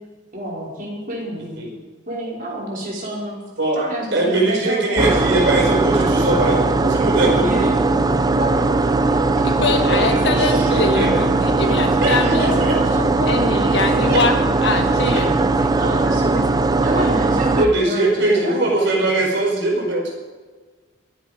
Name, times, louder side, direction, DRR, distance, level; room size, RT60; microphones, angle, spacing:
voice 1, 0.3-1.5 2.1-3.4 3.7-6.5 7.2-7.8 8.2-8.7 9.1-9.4 10.4-10.7 12.1-13.8 15.7-16.5 16.8-19.0, right 1 dB, 45° right, -4 dB, 4.9 m, -28 dB
voice 2, 4.1-7.6 8.9-9.0 9.9-10.2 10.7-11.1 12.0-12.7 14.1-14.2 15.1-15.2 17.6-20.1, right 2 dB, 60° right, -1 dB, 4.9 m, -21 dB
sound 1, 5.0-17.7, right 3 dB, 20° right, 0.6 m, -19 dB
voice 3, 9.4-12.5 13.3-15.8, left 3 dB, 60° left, 5 dB, 1.6 m, -23 dB
22.5 x 9.5 x 5.2 m, 1.4 s
head